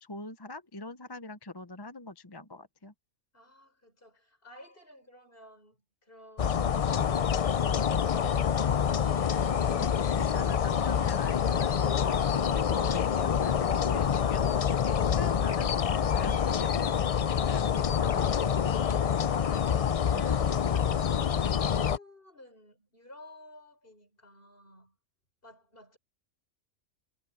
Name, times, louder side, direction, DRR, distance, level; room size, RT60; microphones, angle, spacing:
voice 1, 0.0-2.9 9.7-9.9 10.2-11.7 12.5-17.0 17.5-19.3 20.1-20.4, left 2 dB, 20° left, 0.8 m, -43 dB
voice 2, 3.3-6.8 19.0-25.0 25.4-26.0, left 1 dB, 45° left, 6.5 m, -53 dB
sound 1, 6.4-22.0, left 8 dB, 65° left, 0.3 m, -27 dB
sound 2, 9.0-12.3, right 2 dB, 60° right, 3.0 m, -55 dB
omnidirectional pair, 1.3 m